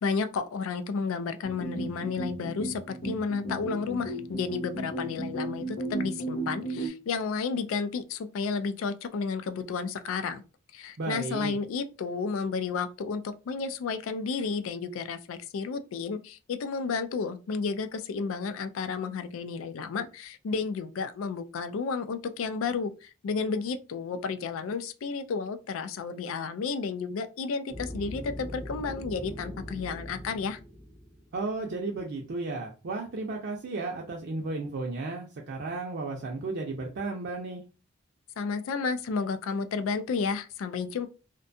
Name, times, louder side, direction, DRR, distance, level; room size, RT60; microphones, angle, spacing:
voice 1, 0.0-10.4 10.7-30.6 38.4-41.1, left 5 dB, 90° left, 0.3 m, -32 dB
sound 1, 1.4-6.9, right 1 dB, 65° left, 0.8 m, -35 dB
voice 2, 11.0-11.5 31.3-37.6, right 3 dB, 55° right, 0.4 m, -34 dB
sound 2, 27.7-31.7, equal, 5° left, 0.5 m, -41 dB
2.6 x 2.2 x 2.6 m
head